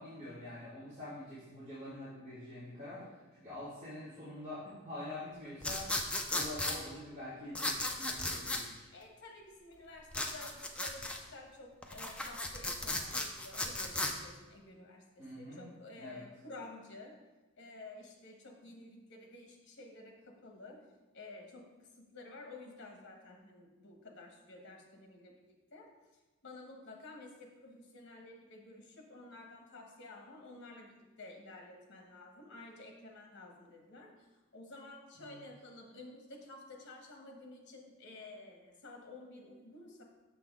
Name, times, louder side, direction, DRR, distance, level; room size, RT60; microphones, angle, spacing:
voice 1, 0.0-3.1 3.3-5.9 6.3-8.8 15.2-15.7 16.0-16.2 35.2-35.4, left 1 dB, 30° right, -12 dB, 2.0 m, -46 dB
voice 2, 2.9-3.2 8.9-17.1 17.5-20.8 21.1-25.9 26.4-34.3 34.5-40.0, left 2 dB, 55° left, 2 dB, 1.2 m, -52 dB
sound 1, 5.6-6.8 7.5-8.6 10.1-11.2 11.8-14.1, left 2 dB, 5° left, 0.4 m, -35 dB
6.7 x 6.0 x 3.6 m, 1.2 s
head